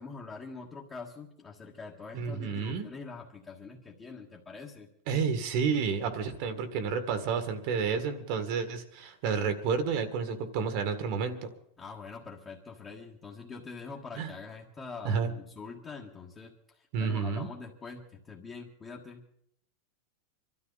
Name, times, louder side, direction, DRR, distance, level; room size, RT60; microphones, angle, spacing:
voice 1, 0.0-4.9 11.8-19.2, left 4 dB, 20° left, -4 dB, 1.6 m, -44 dB
voice 2, 2.1-2.9 5.1-11.4 14.2-14.3 15.0-15.3 16.9-17.5, right 6 dB, 50° right, 9 dB, 1.8 m, -30 dB
24.5 x 13.0 x 4.1 m, 0.73 s
supercardioid pair, 150°, 0 cm